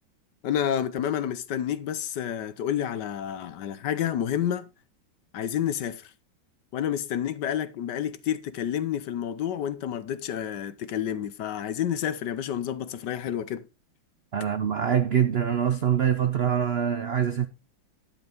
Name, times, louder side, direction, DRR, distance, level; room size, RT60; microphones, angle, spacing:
voice 1, 0.4-4.7 5.3-6.1 6.7-13.6, left 10 dB, 65° left, 1.4 m, -29 dB
voice 2, 14.3-17.5, right 8 dB, 75° right, 0.5 m, -24 dB
10.5 x 8.1 x 3.6 m
omnidirectional pair, 2.1 m